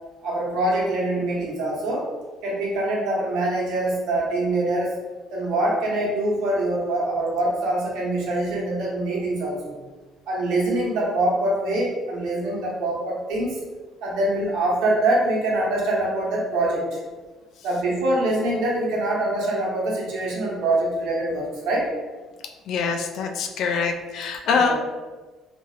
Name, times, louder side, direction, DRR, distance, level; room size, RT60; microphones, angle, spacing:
voice 1, 0.2-2.1 2.4-4.9 5.3-9.8 10.3-13.6 14.0-17.0 17.6-21.9 24.7-24.8, right 1 dB, 85° right, -4 dB, 0.9 m, -24 dB
voice 2, 22.7-24.7, left 5 dB, 65° left, 4 dB, 0.3 m, -24 dB
2.6 x 2.0 x 3.8 m, 1.3 s
cardioid pair, 140°, 0 cm